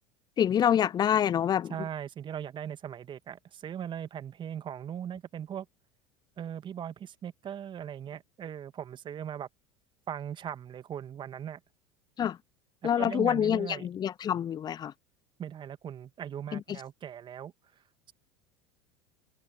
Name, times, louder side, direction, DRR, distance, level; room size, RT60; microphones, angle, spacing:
voice 1, 0.4-1.7 12.2-12.4 12.8-14.9 16.5-16.6, left 9 dB, 25° left, 0.6 m, -26 dB
voice 2, 1.7-5.7 6.4-9.5 10.1-11.6 12.8-13.9 15.4-17.5, right 9 dB, 30° right, 1.8 m, -39 dB
figure-of-eight pair, 80°, 16 cm